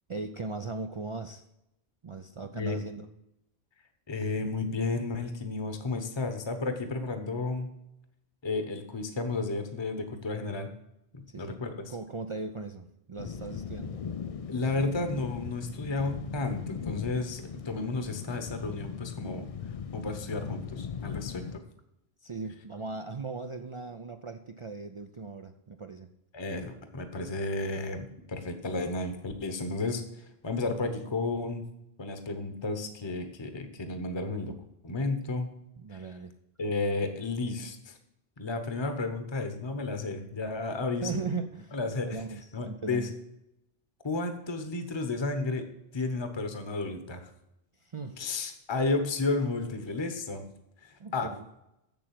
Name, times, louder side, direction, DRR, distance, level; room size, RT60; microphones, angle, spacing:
voice 1, 0.1-1.4 2.0-3.1 11.3-11.6 11.9-14.1 22.2-26.1 35.8-36.3 41.0-43.1 47.8-48.2 51.0-51.5, right 4 dB, 40° right, 6 dB, 0.5 m, -38 dB
voice 2, 4.1-7.7 8.4-10.7 11.1-11.9 14.5-19.5 19.9-21.6 26.3-30.0 30.4-31.6 32.0-34.5 34.8-35.5 35.9-36.0 36.6-38.0 38.4-41.1 41.7-42.2 42.5-43.1 44.0-45.7 45.9-47.3 48.2-50.4 50.8-51.3, left 3 dB, 25° left, 7 dB, 1.0 m, -32 dB
sound 1, 13.2-21.6, left 7 dB, 55° left, 0.4 m, -39 dB
7.4 x 7.0 x 7.5 m, 0.85 s
omnidirectional pair, 1.1 m